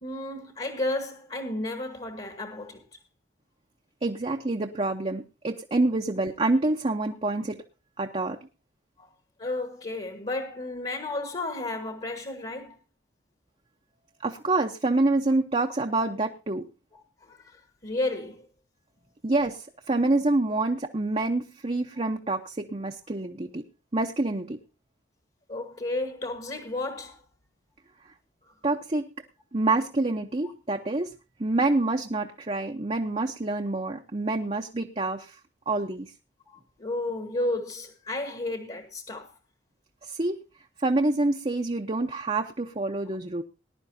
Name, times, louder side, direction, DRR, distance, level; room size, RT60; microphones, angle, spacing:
voice 1, 0.0-2.8 9.0-9.1 9.4-12.8 16.9-18.5 25.5-27.2 28.4-28.5 30.4-30.5 36.4-39.3, left 2 dB, 35° left, 1.5 m, -33 dB
voice 2, 4.0-7.6 8.0-8.4 14.2-16.6 19.2-23.7 23.9-24.6 28.6-29.1 29.5-31.1 31.4-35.4 35.7-36.1 40.0-40.4 40.8-43.4, right 2 dB, 30° right, 0.8 m, -27 dB
20.0 x 11.0 x 2.7 m
head